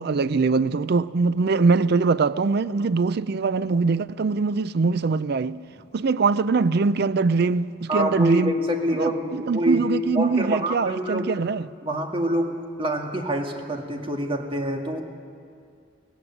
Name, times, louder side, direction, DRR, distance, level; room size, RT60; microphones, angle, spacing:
voice 1, 0.0-5.6 5.9-8.5 9.0-11.7, right 4 dB, 60° right, 0.5 m, -22 dB
voice 2, 7.9-11.3 11.8-15.0, right 1 dB, 30° right, 1.8 m, -26 dB
17.0 x 16.0 x 9.8 m
head